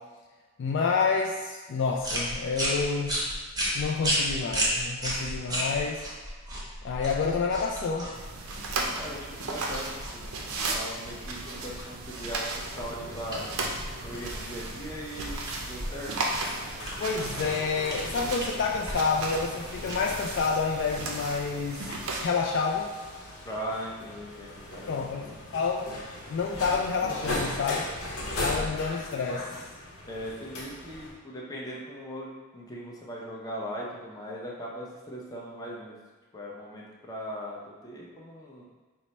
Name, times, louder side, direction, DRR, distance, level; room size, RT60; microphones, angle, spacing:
voice 1, 0.6-3.2 3.7-6.0 6.8-8.1 17.0-21.8 22.2-22.9 24.9-25.9 26.3-27.9 28.4-29.4, left 5 dB, 55° left, 0 dB, 0.3 m, -28 dB
sound 1, 2.0-21.6, equal, 15° right, 0.7 m, -35 dB
sound 2, 8.1-22.3, right 2 dB, 75° right, 0.5 m, -36 dB
voice 2, 9.0-10.5 10.7-13.5 14.0-16.1 23.4-25.4 30.0-32.3 32.5-35.9 36.3-38.6, equal, 15° left, -3 dB, 0.6 m, -39 dB
sound 3, 12.7-31.1, left 1 dB, 90° left, 0.9 m, -39 dB
4.5 x 2.1 x 4.0 m, 1.4 s
head